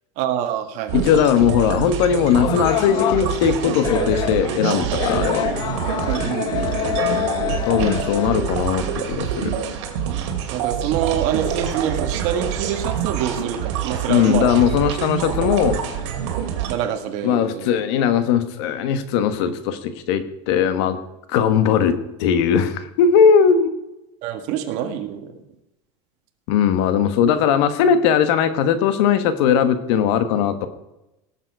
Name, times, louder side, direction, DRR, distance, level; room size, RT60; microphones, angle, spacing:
voice 1, 0.2-1.0 5.4-5.5 6.1-7.2 10.5-14.5 16.7-17.8 24.2-25.3, right 9 dB, 50° right, 7 dB, 1.7 m, -26 dB
voice 2, 0.9-5.5 7.7-9.5 14.1-15.8 17.2-21.0 21.3-23.7 26.5-30.7, left 8 dB, 65° left, 11 dB, 1.3 m, -19 dB
sound 1, 0.9-16.7, right 8 dB, 70° right, 2.3 m, -26 dB
sound 2, 2.4-8.3, left 14 dB, 30° left, 0.3 m, -27 dB
18.0 x 7.5 x 4.7 m, 0.92 s
supercardioid pair, 150°, 15 cm